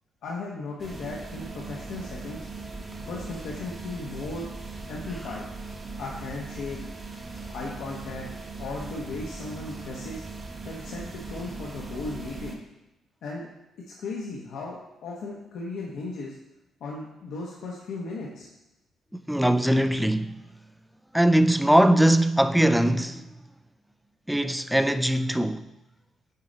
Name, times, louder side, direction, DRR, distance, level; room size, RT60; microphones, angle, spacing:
voice 1, 0.2-2.5 3.0-4.5 4.9-5.5 6.0-6.8 7.5-8.3 8.6-10.2 10.6-12.6 13.2-13.5 13.9-16.4 16.8-18.5, left 3 dB, 75° left, 1.0 m, -36 dB
sound 1, 0.8-12.6, right 3 dB, 35° right, 1.0 m, -39 dB
voice 2, 19.3-20.4 21.1-23.3 24.3-25.7, right 1 dB, 5° right, 0.3 m, -21 dB
6.7 x 4.1 x 3.9 m
cardioid pair, 90°, 0 cm